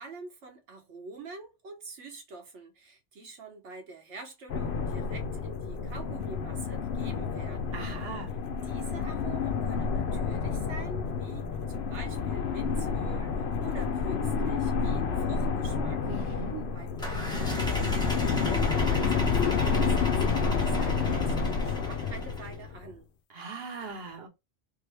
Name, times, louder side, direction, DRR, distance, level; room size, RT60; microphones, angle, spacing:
voice 1, 0.0-8.2 8.6-16.4 16.7-23.1, right 3 dB, 75° right, 1.2 m, -46 dB
sound 1, 4.5-22.9, left 5 dB, 70° left, 0.8 m, -29 dB
voice 2, 7.7-8.3 16.1-16.7 23.3-24.3, right 4 dB, 60° right, 1.1 m, -39 dB
sound 2, 17.0-22.5, left 1 dB, 5° left, 0.8 m, -35 dB
3.7 x 2.1 x 3.3 m
omnidirectional pair, 1.2 m